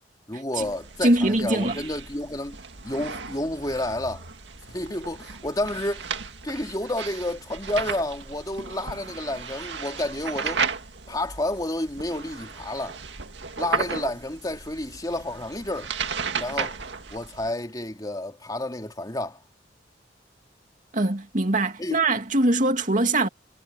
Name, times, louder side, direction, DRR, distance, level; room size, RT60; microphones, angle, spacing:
voice 1, 0.3-2.6 2.8-4.2 4.7-6.1 6.4-10.6 11.1-13.0 13.6-15.9 16.3-16.8 17.1-19.4 21.8-22.0, left 1 dB, 20° left, 2.7 m, -30 dB
sound 1, 0.5-17.5, right 5 dB, 80° right, 2.0 m, -35 dB
voice 2, 1.0-1.8 20.9-23.3, right 2 dB, 45° right, 2.6 m, -22 dB
head